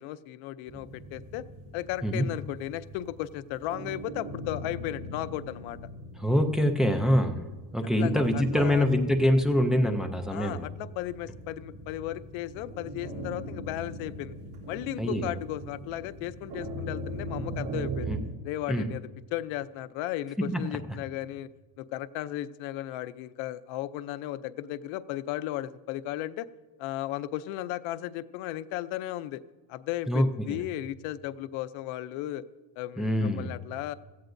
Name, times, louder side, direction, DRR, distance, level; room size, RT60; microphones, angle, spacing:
voice 1, 0.0-1.4 1.7-5.8 8.0-8.9 10.3-14.3 14.7-18.1 18.4-21.5 21.8-26.5 26.8-29.4 29.7-32.4 32.8-33.9, left 14 dB, 75° left, 14 dB, 0.6 m, -35 dB
sound 1, 0.7-18.2, right 1 dB, 55° right, 3.2 m, -40 dB
voice 2, 6.2-7.5 7.7-10.7 15.0-15.3 18.1-18.2 18.7-18.9 20.5-20.6 30.1-30.6 33.0-33.5, equal, ahead, 3 dB, 0.3 m, -25 dB
17.0 x 14.0 x 2.6 m, 1.3 s
cardioid pair, 170°, 47 cm